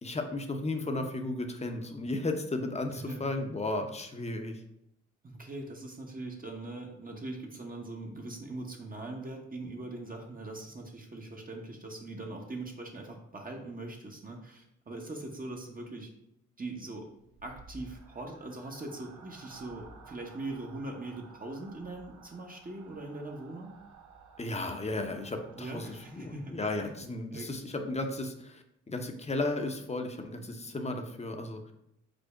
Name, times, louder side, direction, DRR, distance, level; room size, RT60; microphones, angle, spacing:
voice 1, 0.0-4.6 24.4-31.7, left 2 dB, 20° left, 5 dB, 0.7 m, -34 dB
voice 2, 5.2-16.1 16.6-17.1 17.4-23.7 25.5-26.6 26.8-26.9 27.3-27.5, right 2 dB, 30° right, 1 dB, 0.9 m, -41 dB
sound 1, 17.0-26.9, right 4 dB, 85° right, 0.6 m, -54 dB
5.1 x 2.1 x 4.8 m, 0.81 s
supercardioid pair, 50°, 29 cm